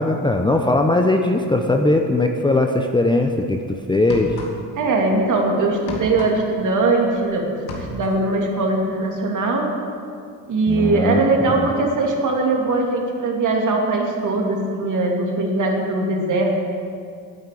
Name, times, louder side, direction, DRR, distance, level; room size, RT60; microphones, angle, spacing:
voice 1, 0.0-4.3 10.7-11.2 11.6-11.7, left 2 dB, 10° left, 4 dB, 0.9 m, -19 dB
sound 1, 3.3-3.4 3.9-4.9 5.1-7.3 7.5-8.3, left 2 dB, 70° left, 2.7 m, -33 dB
voice 2, 4.8-7.4 7.7-9.6 10.5-16.5, right 2 dB, 45° right, 1 dB, 2.8 m, -20 dB
11.0 x 9.2 x 8.4 m, 2.3 s
supercardioid pair, 95°, 41 cm